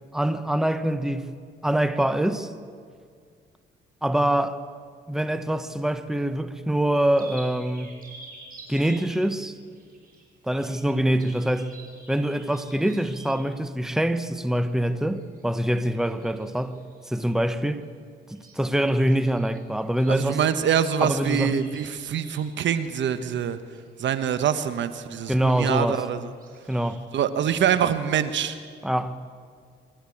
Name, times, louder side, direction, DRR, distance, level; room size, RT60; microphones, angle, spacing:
voice 1, 0.1-1.3 1.6-2.5 4.0-4.6 5.1-8.0 8.7-9.6 10.4-11.7 12.1-16.8 17.1-17.8 18.3-20.4 21.0-21.6 25.3-26.0 26.7-27.0 28.8-29.2, right 1 dB, ahead, 1.0 m, -24 dB
sound 1, 6.9-13.4 15.1-17.6 18.3-24.4 24.8-25.0 25.3-25.7 26.3-26.8, right 2 dB, 45° right, 6.1 m, -50 dB
voice 2, 20.1-23.6 24.0-26.2 27.1-28.6, right 8 dB, 65° right, 1.2 m, -25 dB
26.0 x 12.5 x 8.6 m
cardioid pair, 90°, 20 cm